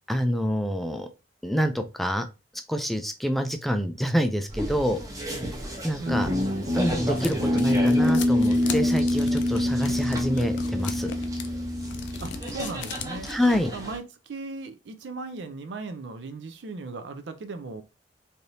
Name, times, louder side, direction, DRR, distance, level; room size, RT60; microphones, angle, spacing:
voice 1, 0.1-1.1 1.4-2.3 2.7-5.0 5.8-6.3 6.7-11.1 13.3-13.7, equal, ahead, 0.3 m, -26 dB
sound 1, 4.5-14.0, right 1 dB, 20° right, 0.8 m, -36 dB
voice 2, 6.0-6.4 12.2-13.3 13.7-17.8, right 3 dB, 75° right, 0.5 m, -37 dB
Guitar, 6.1-12.6, left 1 dB, 50° right, 0.8 m, -25 dB
sound 2, 6.3-13.5, left 6 dB, 75° left, 0.4 m, -38 dB
3.3 x 2.7 x 2.6 m
head